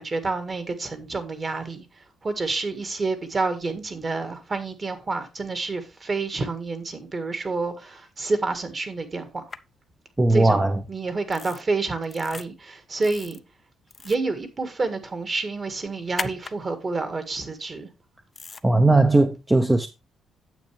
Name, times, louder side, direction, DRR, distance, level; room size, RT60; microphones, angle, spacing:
voice 1, 0.0-9.4 10.3-13.4 14.0-17.9, right 3 dB, 30° right, 1.7 m, -29 dB
sound 1, 9.5-9.6 11.3-11.6 12.0-12.4 13.0-13.4 13.9-14.3 16.2-16.5 18.4-18.6, left 4 dB, 30° left, 0.5 m, -36 dB
voice 2, 10.2-10.7 18.6-19.9, right 2 dB, 15° right, 0.7 m, -18 dB
9.1 x 7.5 x 3.3 m
cardioid pair, 110°, 0 cm